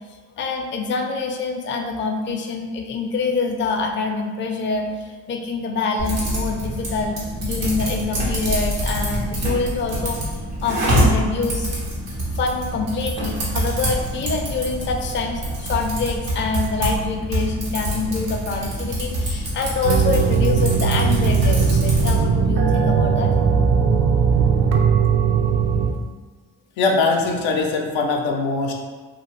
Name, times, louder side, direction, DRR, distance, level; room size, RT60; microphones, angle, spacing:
voice 1, 0.4-10.2 10.6-11.7 12.4-23.3, left 4 dB, 25° left, 3 dB, 0.4 m, -25 dB
Typing, 6.0-22.2, equal, 90° right, 1.0 m, -25 dB
sound 1, 19.8-25.9, right 6 dB, 65° right, 0.6 m, -18 dB
voice 2, 26.8-28.7, left 3 dB, 80° left, 1 dB, 0.6 m, -21 dB
2.6 x 2.4 x 3.1 m, 1.4 s
supercardioid pair, 45°, 45 cm